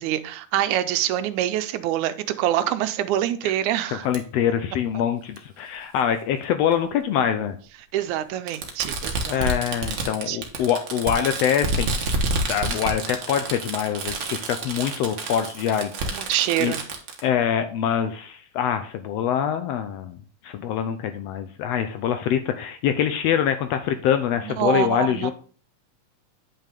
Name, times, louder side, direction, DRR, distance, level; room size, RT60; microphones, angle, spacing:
voice 1, 0.0-4.1 7.9-9.5 10.3-10.4 16.1-16.8 24.4-25.3, right 12 dB, 85° right, 2.1 m, -25 dB
voice 2, 4.0-7.6 9.3-12.2 12.5-16.3 16.6-16.7 17.2-20.2 20.4-25.3, left 9 dB, 75° left, 1.5 m, -24 dB
Fireworks, 4.1-4.2 5.4-5.5 6.7-6.8 8.5-17.2, right 2 dB, 55° right, 1.4 m, -29 dB
9.0 x 5.6 x 3.5 m
omnidirectional pair, 3.3 m